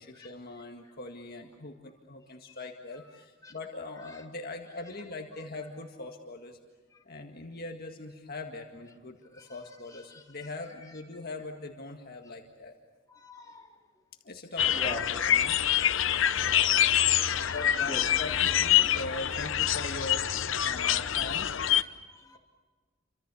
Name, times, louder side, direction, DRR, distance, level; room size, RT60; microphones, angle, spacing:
voice 1, 0.0-6.6 7.1-12.7 13.3-13.5 14.2-14.8 15.1-15.6 16.4-16.8 17.5-20.3 20.6-21.5, left 2 dB, 50° left, 2 dB, 1.9 m, -41 dB
voice 2, 13.2-13.7 14.7-15.0 16.2-18.0 21.1-21.4 21.8-22.4, left 1 dB, 20° left, -1 dB, 3.4 m, -43 dB
sound 1, 14.6-21.8, left 10 dB, 70° left, 0.8 m, -26 dB
30.0 x 25.5 x 7.1 m, 1.4 s
head